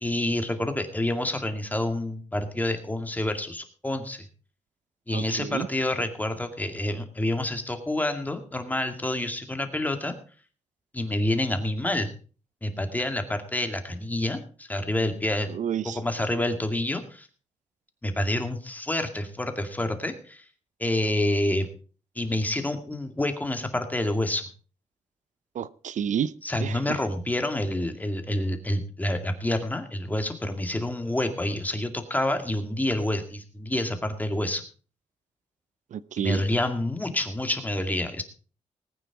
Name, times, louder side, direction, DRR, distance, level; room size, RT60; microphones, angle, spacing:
voice 1, 0.0-4.2 5.1-10.1 10.9-12.1 12.6-15.5 15.8-17.3 18.0-20.4 20.8-21.7 22.2-24.5 26.4-34.6 36.2-38.2, left 1 dB, 15° left, 6 dB, 2.2 m, -28 dB
voice 2, 5.1-5.7 15.5-16.0 25.5-26.3 26.6-27.0 35.9-36.4, right 9 dB, 80° right, 17 dB, 0.6 m, -30 dB
19.5 x 9.1 x 4.7 m, 0.39 s
wide cardioid pair, 115°, 13 cm